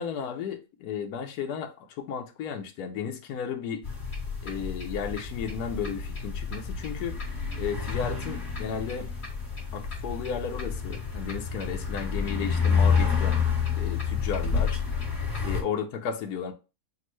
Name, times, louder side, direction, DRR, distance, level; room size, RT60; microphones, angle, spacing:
voice 1, 0.0-1.7 2.0-3.8 4.4-7.2 7.5-9.1 9.7-13.4 13.8-14.8 15.4-16.5, left 7 dB, 75° left, 1.2 m, -34 dB
sound 1, 3.8-15.6, left 6 dB, 40° left, 1.7 m, -29 dB
6.3 x 2.2 x 3.1 m
omnidirectional pair, 1.7 m